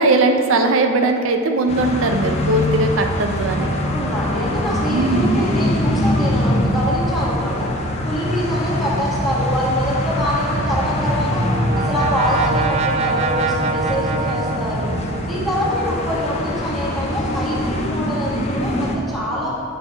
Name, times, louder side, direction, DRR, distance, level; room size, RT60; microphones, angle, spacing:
voice 1, 0.0-3.7 4.9-5.4, right 2 dB, 85° right, 5 dB, 0.5 m, -19 dB
sound 1, 1.7-19.0, left 1 dB, 35° left, 0.7 m, -23 dB
voice 2, 3.6-7.7 8.0-11.4 11.7-14.9 15.3-19.5, equal, ahead, -8 dB, 1.8 m, -25 dB
Brass instrument, 10.8-15.6, right 4 dB, 35° right, 0.3 m, -24 dB
8.4 x 5.6 x 3.9 m, 2.3 s
head